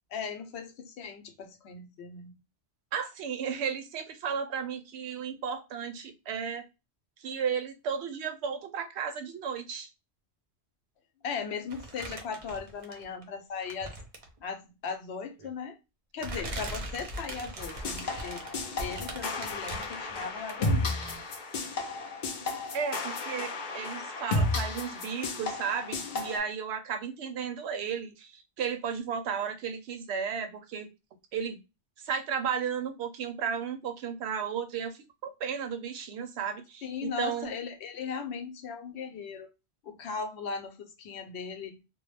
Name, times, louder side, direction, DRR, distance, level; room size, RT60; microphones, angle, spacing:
voice 1, 0.1-2.4 11.2-13.9 14.4-15.8 16.1-18.5 18.8-21.3 36.8-39.5 39.8-41.8, left 5 dB, 85° left, 0.9 m, -38 dB
voice 2, 2.9-6.6 7.2-9.9 22.7-30.9 31.3-31.6 32.0-37.5, right 7 dB, 85° right, 0.8 m, -34 dB
sound 1, 11.7-13.2 13.6-14.4 15.4-15.5 16.2-21.3 21.6-21.7, right 1 dB, 45° right, 0.5 m, -41 dB
sound 2, 17.6-26.4, left 2 dB, 60° left, 0.6 m, -33 dB
2.2 x 2.1 x 3.1 m
omnidirectional pair, 1.1 m